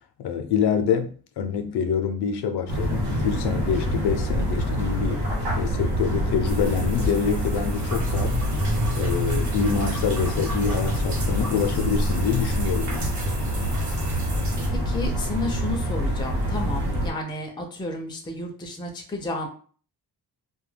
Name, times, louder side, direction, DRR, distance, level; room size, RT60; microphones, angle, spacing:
voice 1, 0.2-5.2 5.5-8.4 8.9-13.1, left 7 dB, 80° left, 0.5 m, -26 dB
sound 1, 2.7-17.1, equal, 85° right, 0.9 m, -26 dB
sound 2, 6.4-14.7, right 1 dB, 50° right, 0.7 m, -35 dB
voice 2, 14.9-19.5, left 2 dB, 15° left, 0.3 m, -32 dB
2.2 x 2.2 x 3.2 m
wide cardioid pair, 170°, 39 cm